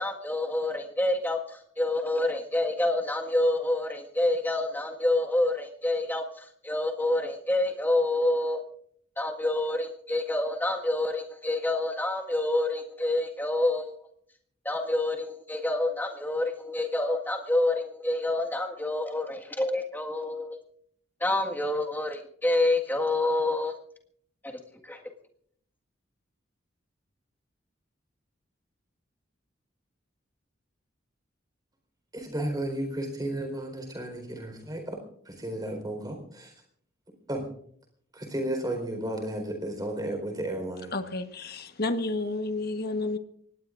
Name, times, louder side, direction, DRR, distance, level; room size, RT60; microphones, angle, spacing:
voice 1, 0.0-8.6 9.2-13.9 14.7-20.6 21.2-23.7 24.4-24.5 24.8-25.0, left 2 dB, 10° left, 1.7 m, -27 dB
voice 2, 32.1-35.0 35.2-36.5 37.3-37.4 38.1-40.9, right 1 dB, 20° right, 4.3 m, -33 dB
voice 3, 40.9-43.2, left 2 dB, 50° left, 1.3 m, -30 dB
24.5 x 19.0 x 2.6 m
head